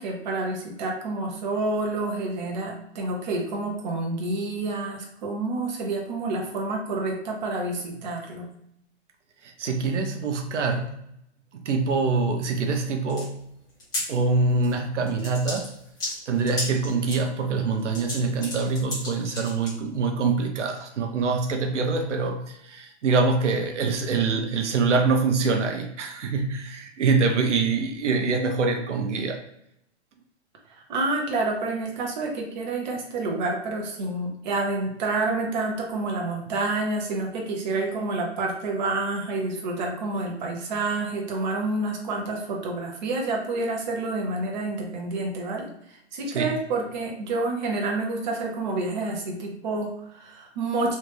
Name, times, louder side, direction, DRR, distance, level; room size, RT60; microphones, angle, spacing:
voice 1, 0.0-8.5 30.7-51.0, right 2 dB, 40° right, 0 dB, 0.9 m, -28 dB
voice 2, 9.4-10.9 11.5-13.4 14.1-15.7 16.0-29.4 46.3-46.5, right 4 dB, 90° right, 5 dB, 0.7 m, -25 dB
sound 1, 13.1-13.2 13.7-14.0 14.6-14.8 15.1-17.2 17.8-19.7, left 1 dB, 10° left, 1.1 m, -33 dB
3.3 x 2.5 x 3.3 m, 0.76 s
hypercardioid pair, 155°, 35 cm